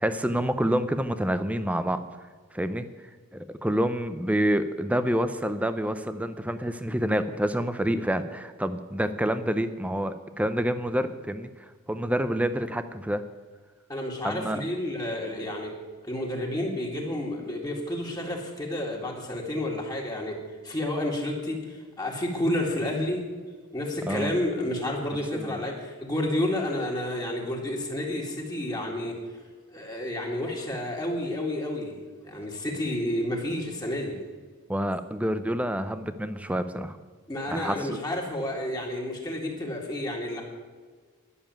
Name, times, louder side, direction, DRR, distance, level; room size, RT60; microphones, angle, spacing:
voice 1, 0.0-2.0 2.5-2.9 3.3-11.5 11.9-13.2 14.2-14.6 24.1-24.3 25.3-25.6 34.7-37.0 37.5-38.0, equal, 5° right, 11 dB, 0.6 m, -27 dB
voice 2, 13.9-15.7 16.0-20.4 20.6-23.2 23.7-29.2 29.7-32.0 32.2-34.2 37.3-40.4, left 1 dB, 20° left, -1 dB, 2.1 m, -30 dB
11.5 x 7.1 x 8.9 m, 1.5 s
head